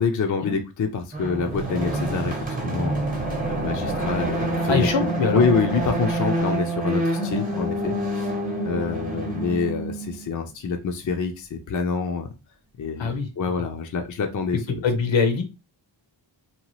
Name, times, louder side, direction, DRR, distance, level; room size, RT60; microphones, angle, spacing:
voice 1, 0.0-3.0 3.5-5.1 5.3-8.3 8.6-12.3 12.8-14.8, left 5 dB, 40° left, 4 dB, 0.5 m, -26 dB
sound 1, 1.1-10.3, right 1 dB, 20° right, 0.8 m, -27 dB
voice 2, 4.7-5.4 13.0-13.3 14.8-15.4, left 4 dB, 70° left, 5 dB, 0.8 m, -22 dB
2.8 x 2.3 x 2.9 m, 0.27 s
wide cardioid pair, 110°, 47 cm